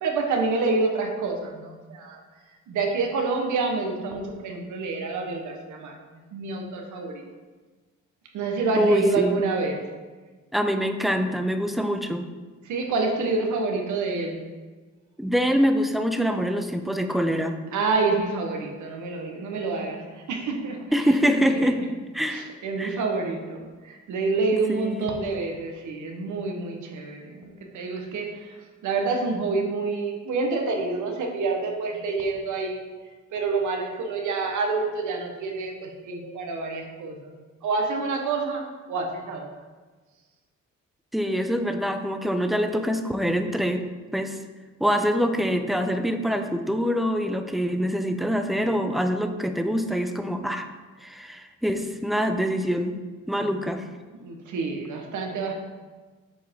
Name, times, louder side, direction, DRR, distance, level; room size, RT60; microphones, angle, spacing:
voice 1, 0.0-2.2 2.7-5.9 6.3-7.2 8.3-9.8 12.6-14.3 17.7-20.8 22.3-28.6 28.8-32.8 33.3-37.4 37.6-38.6 38.9-39.5 54.2-55.5, right 3 dB, 75° right, 2 dB, 1.1 m, -27 dB
voice 2, 8.8-9.5 10.5-12.2 15.2-17.6 20.9-21.8 22.1-22.5 22.8-23.0 24.7-25.1 41.1-43.9 44.1-44.4 44.8-50.7 51.0-53.0 53.3-53.9, equal, ahead, 7 dB, 0.5 m, -25 dB
7.4 x 4.7 x 3.6 m, 1.3 s
cardioid pair, 90°, 30 cm